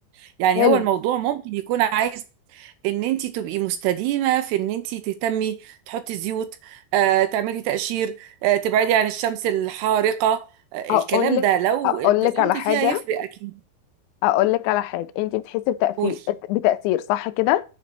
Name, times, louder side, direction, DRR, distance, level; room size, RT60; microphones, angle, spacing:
voice 1, 0.4-2.2 2.6-10.4 10.7-12.1 12.4-13.5 16.0-16.2, right 11 dB, 80° right, 2.6 m, -23 dB
voice 2, 10.9-11.4 11.8-13.0 14.2-17.6, left 15 dB, 90° left, 2.9 m, -22 dB
8.5 x 4.1 x 6.8 m
omnidirectional pair, 5.1 m